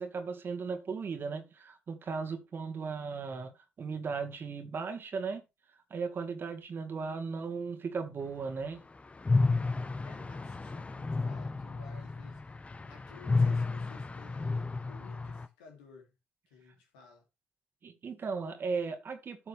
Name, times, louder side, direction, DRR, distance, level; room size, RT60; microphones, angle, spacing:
voice 1, 0.0-3.5 3.8-5.4 5.9-8.8 17.8-19.5, right 5 dB, 50° right, 1.9 m, -36 dB
sound 1, 9.2-15.5, left 3 dB, 25° left, 0.9 m, -31 dB
voice 2, 9.8-16.1 16.5-17.2, left 5 dB, 85° left, 2.9 m, -56 dB
12.5 x 6.6 x 3.5 m
hypercardioid pair, 50°, 5 cm